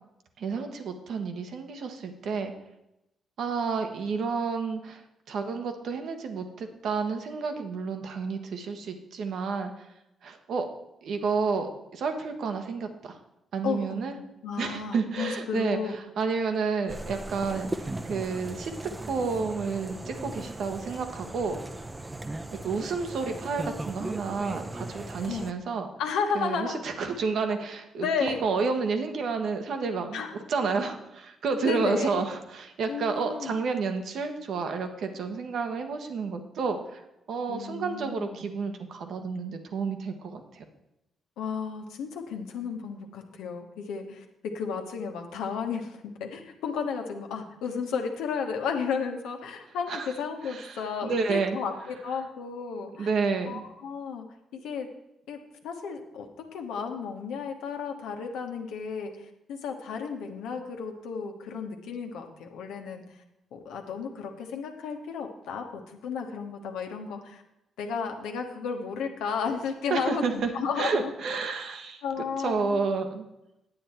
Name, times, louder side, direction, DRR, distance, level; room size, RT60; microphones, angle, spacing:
voice 1, 0.4-2.5 3.4-5.0 5.3-9.9 10.2-10.7 11.0-13.2 13.5-14.1 14.6-18.7 19.0-21.6 22.5-25.9 26.3-30.2 30.5-37.0 37.3-40.6 49.9-50.1 50.4-51.6 53.0-53.6 69.9-70.5 70.8-72.0 72.4-73.3, right 5 dB, 60° right, 6 dB, 1.1 m, -30 dB
voice 2, 13.6-16.0 25.3-25.5 26.0-26.8 28.0-28.4 30.1-30.3 31.6-32.1 32.9-33.6 37.5-38.4 41.4-53.1 53.5-54.3 54.6-54.9 55.3-55.4 55.6-63.0 63.5-67.4 67.8-71.0 72.0-72.8, left 6 dB, 70° left, 4 dB, 1.2 m, -33 dB
sound 1, 16.9-25.5, right 2 dB, 20° right, 0.8 m, -38 dB
9.2 x 8.8 x 4.4 m, 0.89 s
hypercardioid pair, 40°, 0 cm